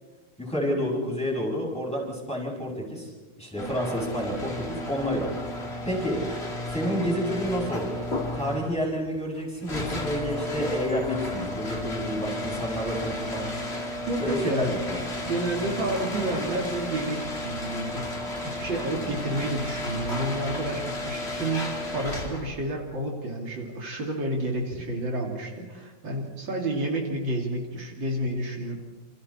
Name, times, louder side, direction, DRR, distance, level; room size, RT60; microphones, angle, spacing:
voice 1, 0.4-3.1 3.4-5.3 5.8-6.2 6.7-8.0 8.4-13.5 14.2-15.0 19.0-19.1, equal, 5° left, -2 dB, 6.8 m, -29 dB
sound 1, 3.6-22.6, left 1 dB, 30° left, 3.0 m, -33 dB
voice 2, 14.1-14.7 15.2-28.8, right 1 dB, 70° right, 0 dB, 3.4 m, -30 dB
28.0 x 27.5 x 4.4 m, 1.3 s
omnidirectional pair, 2.1 m